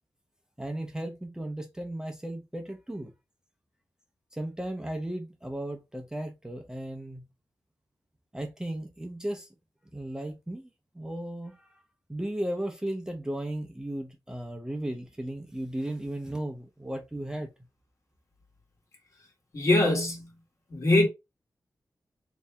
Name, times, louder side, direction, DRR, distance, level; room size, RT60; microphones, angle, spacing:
voice 1, 0.6-3.1 4.3-7.3 8.3-9.5 9.9-11.8 12.1-17.5, right 1 dB, 10° right, 0.6 m, -35 dB
voice 2, 19.5-20.3 20.7-21.1, left 2 dB, 45° left, 1.3 m, -22 dB
3.4 x 2.7 x 3.3 m
wide cardioid pair, 110°, 7 cm